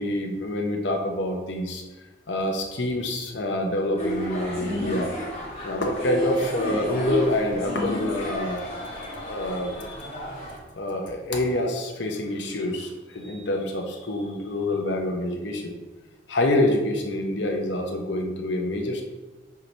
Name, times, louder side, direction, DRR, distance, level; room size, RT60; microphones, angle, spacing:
voice 1, 0.0-1.8 2.3-5.1 5.6-10.2 10.8-15.7 16.3-19.0, left 1 dB, 65° left, 2 dB, 0.8 m, -27 dB
sound 1, 4.0-10.6, equal, 35° left, 1.7 m, -32 dB
5.9 x 5.5 x 3.2 m, 1.2 s
head